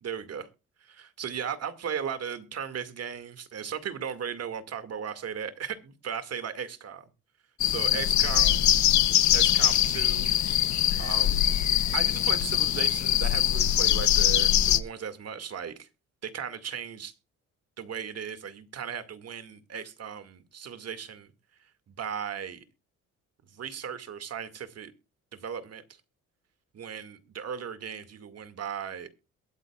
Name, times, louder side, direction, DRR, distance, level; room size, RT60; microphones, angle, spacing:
voice 1, 0.0-0.5 0.8-7.1 7.6-8.5 9.3-10.6 11.0-11.4 11.9-15.9 16.2-17.1 17.8-21.3 21.9-22.6 23.5-24.9 25.4-25.8 26.7-29.1, right 7 dB, 55° right, 2.2 m, -36 dB
sound 1, 7.6-14.8, left 11 dB, 70° left, 1.0 m, -23 dB
22.5 x 8.4 x 2.4 m
cardioid pair, 90°, 30 cm